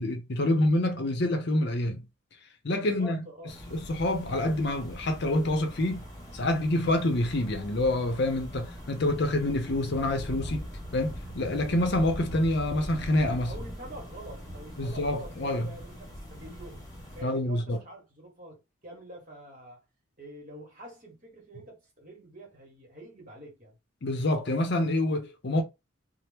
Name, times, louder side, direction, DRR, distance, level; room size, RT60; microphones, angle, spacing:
voice 1, 0.0-2.1 2.6-3.3 3.7-6.1 6.3-10.7 10.9-13.5 14.8-15.7 17.2-17.8 24.0-25.6, left 1 dB, 55° left, 0.6 m, -27 dB
voice 2, 2.8-3.8 13.4-16.8 17.1-19.8 20.2-23.8, right 1 dB, 40° right, 1.3 m, -46 dB
sound 1, 3.5-17.2, equal, 15° left, 1.2 m, -41 dB
2.9 x 2.0 x 3.3 m
head